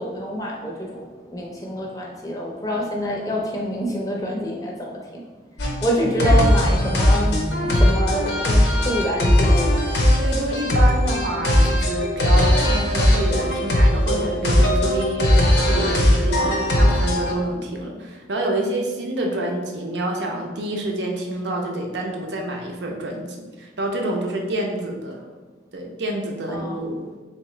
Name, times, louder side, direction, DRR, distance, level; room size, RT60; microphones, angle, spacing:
voice 1, 0.0-5.2 5.8-9.8 16.4-16.9 26.5-26.8, equal, 20° left, -2 dB, 0.5 m, -27 dB
sound 1, 5.6-17.3, left 1 dB, 80° left, 0.6 m, -19 dB
voice 2, 10.2-25.3 25.7-27.0, right 1 dB, 80° right, 1 dB, 0.6 m, -27 dB
3.6 x 2.9 x 3.1 m, 1.4 s
head